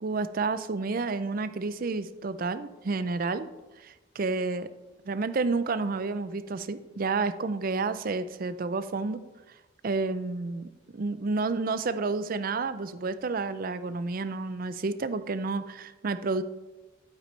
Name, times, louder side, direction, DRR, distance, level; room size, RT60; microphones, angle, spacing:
voice 1, 0.0-3.5 3.8-4.7 5.1-9.2 9.8-16.4, right 3 dB, 45° right, 13 dB, 0.4 m, -30 dB
9.3 x 9.1 x 3.2 m, 1.1 s
head